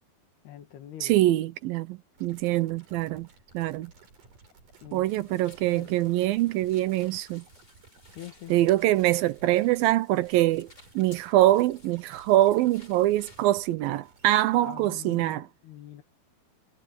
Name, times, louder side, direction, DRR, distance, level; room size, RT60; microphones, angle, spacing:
voice 1, 0.4-1.2 4.8-5.1 5.7-6.1 8.1-8.5 14.6-16.0, left 12 dB, 85° left, 3.9 m, -44 dB
voice 2, 1.0-3.3 3.5-3.9 4.9-7.4 8.5-10.7 11.0-15.5, right 15 dB, 75° right, 2.4 m, -24 dB
sound 1, 2.1-15.4, right 3 dB, 55° right, 7.5 m, -57 dB
sound 2, 5.0-13.5, left 2 dB, 25° left, 7.0 m, -57 dB
omnidirectional pair, 4.4 m